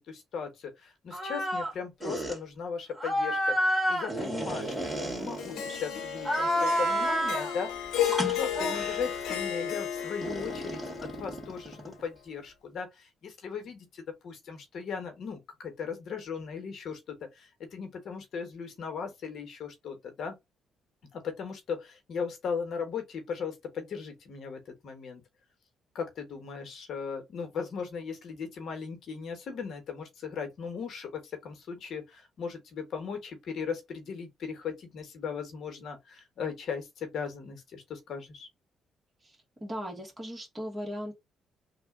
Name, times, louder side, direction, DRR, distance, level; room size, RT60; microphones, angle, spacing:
voice 1, 0.0-20.4 21.1-25.2 25.9-38.5, left 6 dB, 65° left, 1.1 m, -38 dB
sound 1, 1.1-1.7 2.0-2.4 3.0-5.8 6.2-7.6 8.0-9.1 10.2-12.0, equal, 5° right, 2.1 m, -30 dB
Harp, 5.4-11.7, left 10 dB, 85° left, 0.9 m, -33 dB
voice 2, 39.2-41.1, equal, 25° right, 1.7 m, -38 dB
3.2 x 2.4 x 3.6 m
cardioid pair, 90°, 0 cm